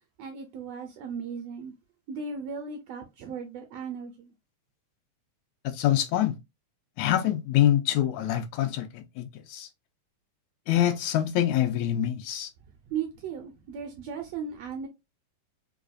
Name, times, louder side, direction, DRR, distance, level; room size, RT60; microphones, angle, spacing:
voice 1, 0.2-1.7 2.1-4.3 12.9-14.9, right 6 dB, 80° right, 1.5 m, -36 dB
voice 2, 5.7-6.3 7.0-9.7 10.7-12.5, left 12 dB, 80° left, 1.8 m, -25 dB
4.9 x 2.2 x 2.4 m
omnidirectional pair, 3.4 m